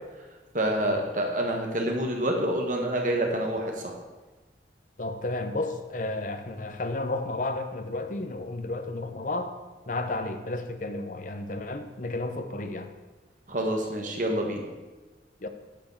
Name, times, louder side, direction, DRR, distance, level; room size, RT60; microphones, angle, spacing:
voice 1, 0.5-3.9 13.5-14.7, right 1 dB, 45° right, 2 dB, 1.5 m, -27 dB
voice 2, 5.0-9.6 9.9-12.9 15.4-15.5, left 2 dB, 45° left, 8 dB, 0.8 m, -32 dB
9.0 x 5.1 x 6.9 m, 1.2 s
head